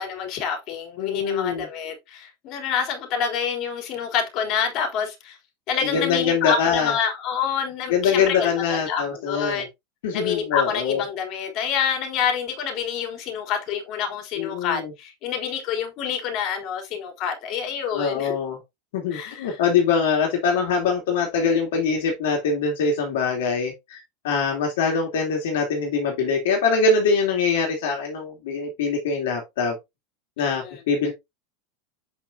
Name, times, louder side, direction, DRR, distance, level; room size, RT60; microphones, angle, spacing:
voice 1, 0.0-5.4 5.7-9.7 10.1-18.3 19.1-19.6 30.4-30.8, left 7 dB, 50° left, 3.4 m, -27 dB
voice 2, 1.0-1.7 5.8-6.9 7.9-9.6 10.0-11.0 14.4-14.9 17.9-18.6 18.9-29.8 30.4-31.1, left 5 dB, 75° left, 2.8 m, -23 dB
7.8 x 6.2 x 2.8 m
hypercardioid pair, 105°, 0 cm